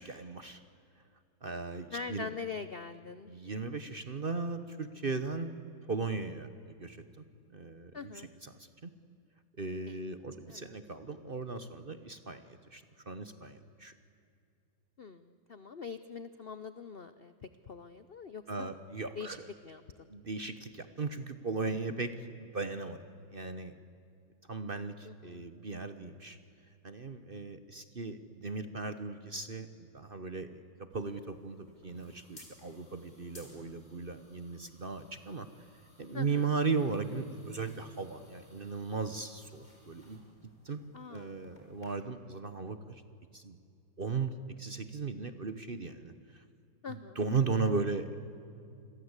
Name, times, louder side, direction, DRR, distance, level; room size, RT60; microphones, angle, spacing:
voice 1, 0.1-0.6 1.4-2.3 3.3-5.6 5.9-7.0 7.5-8.9 9.6-13.9 18.5-19.5 20.1-22.1 22.4-23.0 23.3-23.7 24.5-26.4 26.8-35.5 36.0-40.2 40.6-40.8 41.1-43.0 43.3-43.6 44.0-44.3 44.6-46.4 46.9-48.2, right 4 dB, 35° right, 10 dB, 0.9 m, -37 dB
voice 2, 1.9-3.3 7.9-8.3 9.9-10.0 10.5-10.7 15.0-18.7 19.1-19.4 19.6-20.1 25.0-25.4 36.1-36.5 40.9-41.4 46.8-47.2, left 5 dB, 60° left, 12 dB, 0.6 m, -43 dB
sound 1, 30.9-41.9, left 1 dB, 20° left, 4.9 m, -60 dB
28.5 x 22.0 x 8.2 m, 2.5 s
omnidirectional pair, 2.1 m